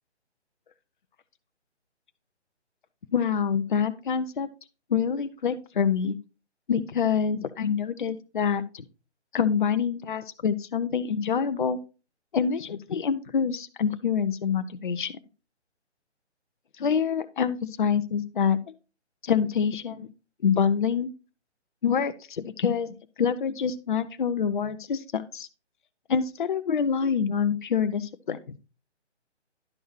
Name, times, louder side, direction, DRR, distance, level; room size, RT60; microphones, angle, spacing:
voice 1, 3.1-4.5 4.9-6.2 6.7-8.8 9.3-11.8 12.3-15.1 16.8-18.6 19.2-20.1 20.4-21.1 21.8-22.9 23.2-25.5 26.1-28.6, left 7 dB, 45° left, 10 dB, 0.6 m, -26 dB
10.5 x 6.2 x 3.1 m, 0.32 s
figure-of-eight pair, 145°, 35 cm